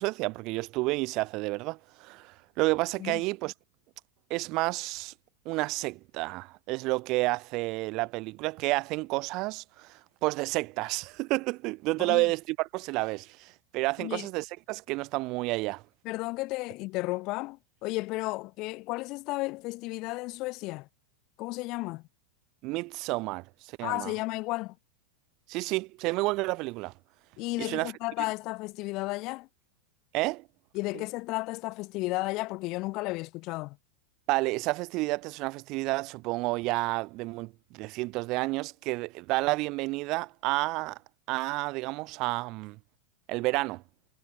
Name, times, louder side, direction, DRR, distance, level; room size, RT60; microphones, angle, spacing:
voice 1, 0.0-3.5 4.3-5.1 5.4-15.8 22.6-24.1 25.5-26.9 27.6-27.9 30.1-30.4 30.9-31.0 34.3-41.0 41.3-42.8 43.3-43.8, right 22 dB, 40° right, 4.9 m, -30 dB
voice 2, 12.0-12.3 14.0-14.3 16.0-20.9 21.4-22.0 23.8-24.7 27.4-29.5 30.7-33.8, left 22 dB, 40° left, 7.9 m, -33 dB
figure-of-eight pair, 90°, 0 cm